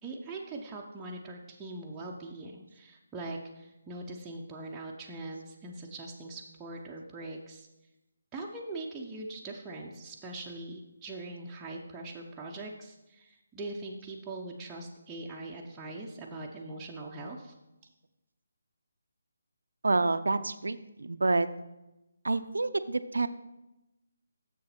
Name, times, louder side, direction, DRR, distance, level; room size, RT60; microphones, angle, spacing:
voice 1, 0.0-7.7 8.3-17.5, right 2 dB, 10° right, -3 dB, 0.6 m, -42 dB
voice 2, 19.8-21.5 22.2-23.3, right 3 dB, 80° right, 12 dB, 0.5 m, -28 dB
7.0 x 6.5 x 4.3 m, 0.96 s
figure-of-eight pair, 160°, 0 cm